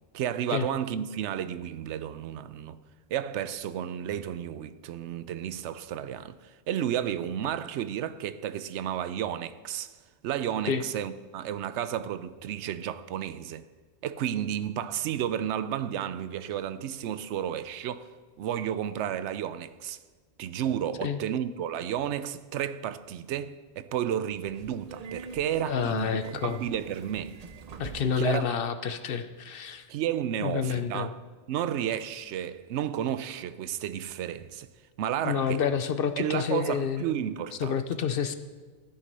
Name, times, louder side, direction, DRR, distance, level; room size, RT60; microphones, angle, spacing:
voice 1, 0.1-2.8 3.1-9.9 10.2-13.7 14.0-18.1 18.4-20.0 20.4-27.4 28.2-28.5 29.9-31.2 31.5-34.7 35.0-35.6 36.2-37.7, right 10 dB, 80° right, 0.9 m, -32 dB
Subway metro underground, 24.2-28.4, right 5 dB, 45° right, 0.5 m, -46 dB
voice 2, 25.6-26.6 27.8-29.9 30.4-31.1 35.2-37.0 37.6-38.3, left 7 dB, 60° left, 0.8 m, -29 dB
14.5 x 8.4 x 5.3 m
omnidirectional pair, 1.2 m